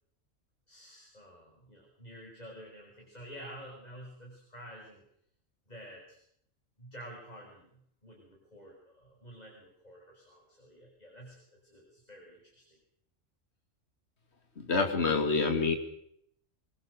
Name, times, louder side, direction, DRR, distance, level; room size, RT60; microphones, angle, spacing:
voice 1, 0.7-5.0 5.7-6.2 6.8-7.7 8.0-12.8, equal, 30° left, -1 dB, 5.9 m, -50 dB
voice 2, 14.7-15.8, left 4 dB, 55° left, 5 dB, 2.5 m, -26 dB
24.5 x 22.0 x 6.7 m, 0.71 s
omnidirectional pair, 1.4 m